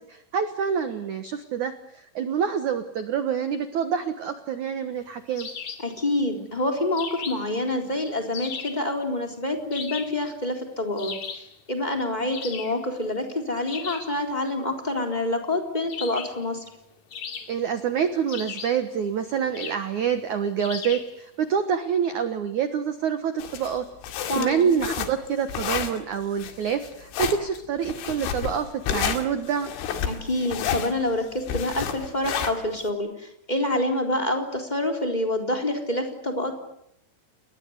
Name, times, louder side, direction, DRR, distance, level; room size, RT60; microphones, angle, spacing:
voice 1, 0.1-5.5 17.5-23.9 24.4-29.7, right 7 dB, 75° right, 9 dB, 1.8 m, -27 dB
sound 1, 5.4-5.9 7.0-7.6 8.3-8.9 9.7-10.2 11.0-11.5 12.3-12.8 13.7-14.1 15.9-16.4 17.1-17.8 18.3-18.9 19.5-19.9 20.6-21.1, left 6 dB, 45° left, 3.3 m, -37 dB
voice 2, 5.8-11.2 11.7-16.6 24.3-24.7 30.0-36.5, left 1 dB, 10° left, 3 dB, 3.2 m, -27 dB
sound 2, 23.4-32.9, left 8 dB, 80° left, 4.6 m, -30 dB
29.0 x 21.5 x 8.1 m, 0.76 s
omnidirectional pair, 5.5 m